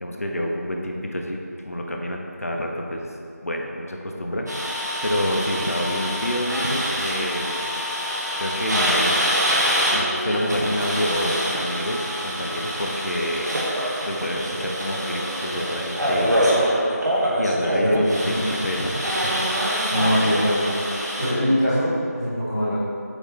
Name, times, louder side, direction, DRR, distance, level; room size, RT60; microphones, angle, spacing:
voice 1, 0.0-1.4 1.6-3.1 3.4-7.6 8.4-9.2 9.9-13.5 14.1-16.5 17.4-19.3 19.7-19.9, equal, 60° left, 1 dB, 0.7 m, -28 dB
sound 1, 4.5-21.3, equal, 80° right, 1.5 m, -25 dB
sound 2, 12.8-17.9, equal, 30° right, 1.2 m, -38 dB
voice 2, 17.8-18.3 19.9-20.7 21.2-22.7, equal, 15° left, -15 dB, 1.3 m, -22 dB
8.1 x 3.2 x 3.7 m, 2.4 s
figure-of-eight pair, 180°, 9 cm